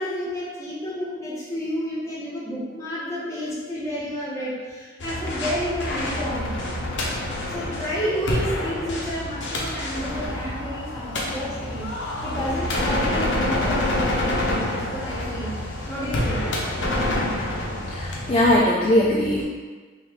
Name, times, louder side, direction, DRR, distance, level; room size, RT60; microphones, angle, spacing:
voice 1, 0.0-6.6 7.5-15.6 15.9-16.5, equal, 15° left, -9 dB, 1.0 m, -30 dB
sound 1, 5.0-18.6, left 1 dB, 75° left, 0.7 m, -27 dB
voice 2, 17.9-19.4, left 1 dB, 30° left, -5 dB, 0.3 m, -20 dB
3.0 x 2.7 x 3.5 m, 1.4 s
head